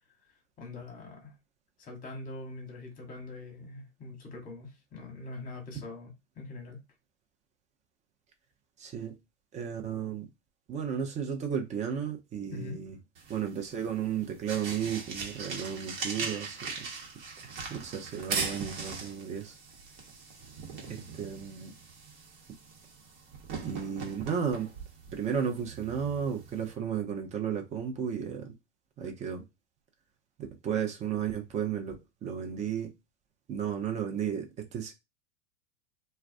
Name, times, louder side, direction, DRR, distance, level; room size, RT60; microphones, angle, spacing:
voice 1, 0.6-1.3 1.8-6.8 12.5-12.8, left 2 dB, 25° left, 1.1 m, -43 dB
voice 2, 8.8-9.2 9.5-10.3 10.7-13.0 13.3-16.9 17.7-19.6 20.9-21.7 23.6-24.7 25.1-28.5 29.0-29.4 30.6-32.9 33.5-34.9, right 8 dB, 20° right, 0.6 m, -33 dB
sound 1, 13.1-26.7, right 4 dB, 50° right, 1.1 m, -40 dB
2.2 x 2.2 x 2.5 m
hypercardioid pair, 100°, 35 cm